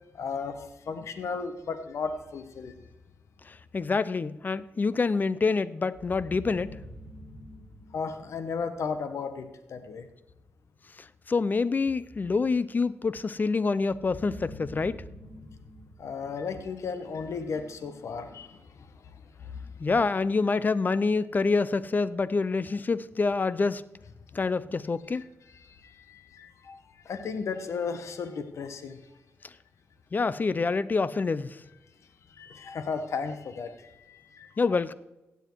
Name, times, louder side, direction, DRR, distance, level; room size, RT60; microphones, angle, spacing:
voice 1, 0.1-2.8 7.9-10.1 16.0-18.9 19.4-19.6 24.4-24.5 25.1-25.2 25.6-29.0 32.3-34.6, left 5 dB, 75° left, 9 dB, 1.2 m, -35 dB
voice 2, 3.5-6.7 11.3-15.0 19.8-23.8 24.3-25.3 30.1-31.6 34.6-34.9, left 4 dB, 40° left, 17 dB, 0.6 m, -26 dB
sound 1, 5.9-8.9 13.9-17.1, equal, 15° right, 4.4 m, -46 dB
16.0 x 7.9 x 4.6 m, 0.99 s
cardioid pair, 85°, 5 cm